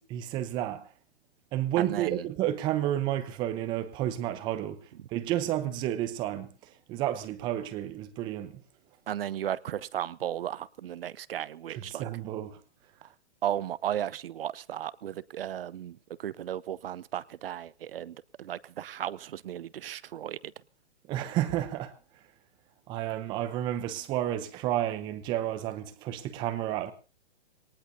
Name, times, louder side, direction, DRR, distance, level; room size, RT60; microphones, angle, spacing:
voice 1, 0.1-0.8 1.5-4.8 5.1-6.5 6.9-8.5 11.7-12.6 21.1-21.9 22.9-26.9, right 12 dB, 15° right, 0.8 m, -31 dB
voice 2, 1.8-2.2 9.1-12.1 13.4-15.9 16.2-20.4, right 11 dB, 60° right, 0.8 m, -35 dB
22.5 x 19.0 x 2.8 m
hypercardioid pair, 165°, 33 cm